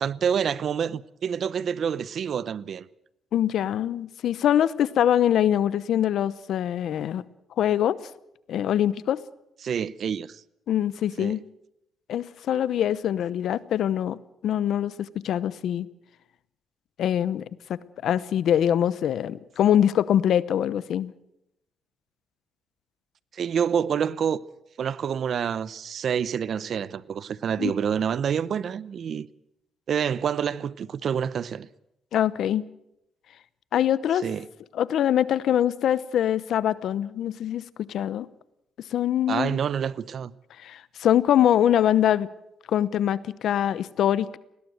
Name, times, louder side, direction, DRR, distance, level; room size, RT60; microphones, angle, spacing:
voice 1, 0.0-2.9 9.6-10.4 11.2-11.4 23.3-24.4 24.8-29.3 29.9-31.7 34.2-34.5 39.3-40.3, right 7 dB, 60° right, 0.7 m, -27 dB
voice 2, 3.3-7.2 7.6-8.0 8.5-9.2 10.7-11.4 12.1-15.9 17.0-17.4 18.0-21.1 27.6-27.7 32.1-32.6 33.7-34.2 34.7-37.6 37.9-38.3 38.9-39.6 40.6-42.3 42.7-44.4, left 10 dB, 70° left, 0.8 m, -23 dB
20.0 x 17.5 x 7.9 m
cardioid pair, 90°, 0 cm